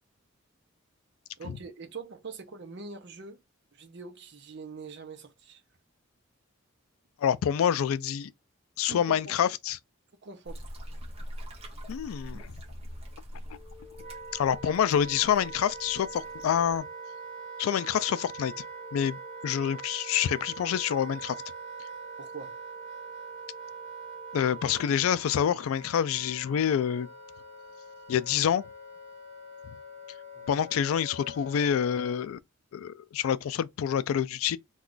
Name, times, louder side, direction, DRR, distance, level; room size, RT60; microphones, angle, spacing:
voice 1, 1.4-3.4 3.7-5.6 8.9-9.3 10.2-10.6 22.2-22.6 30.3-30.7, right 4 dB, 55° right, 0.6 m, -43 dB
voice 2, 7.2-8.3 8.8-9.8 11.9-12.5 14.3-16.8 17.6-18.5 18.9-19.2 19.4-21.4 24.3-27.1 28.1-28.6 30.5-32.4 32.7-34.6, left 9 dB, 80° left, 0.3 m, -27 dB
sound 1, 10.4-16.8, equal, 30° right, 0.8 m, -43 dB
Wind instrument woodwind instrument, 13.5-32.3, right 3 dB, 50° left, 0.9 m, -43 dB
2.3 x 2.3 x 3.7 m
head